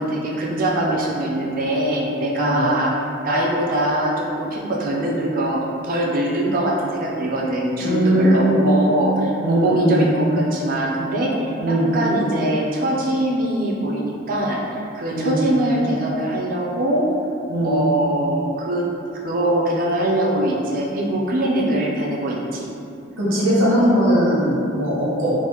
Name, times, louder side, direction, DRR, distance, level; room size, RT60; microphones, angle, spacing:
voice 1, 0.0-2.9 3.2-17.1 17.6-18.9 19.2-22.7, right 1 dB, 45° right, -3 dB, 0.4 m, -22 dB
voice 2, 2.4-2.7 7.8-8.6 9.4-10.0 11.6-11.9 15.1-15.4 17.5-17.8 23.2-25.3, equal, 85° right, -8 dB, 1.0 m, -19 dB
3.2 x 2.0 x 2.9 m, 2.6 s
head